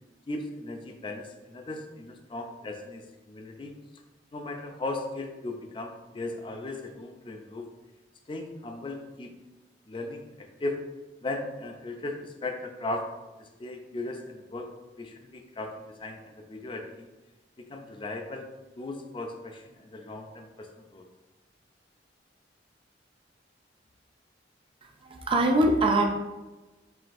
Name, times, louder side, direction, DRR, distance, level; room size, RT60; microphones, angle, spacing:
voice 1, 0.3-3.7 4.3-7.7 8.3-9.3 9.9-10.8 11.2-13.1 13.4-17.1 17.6-18.5 18.8-21.1, left 2 dB, 30° left, 4 dB, 0.4 m, -37 dB
voice 2, 25.0-26.1, right 1 dB, 30° right, 2 dB, 0.5 m, -22 dB
4.9 x 3.2 x 2.5 m, 1.1 s
head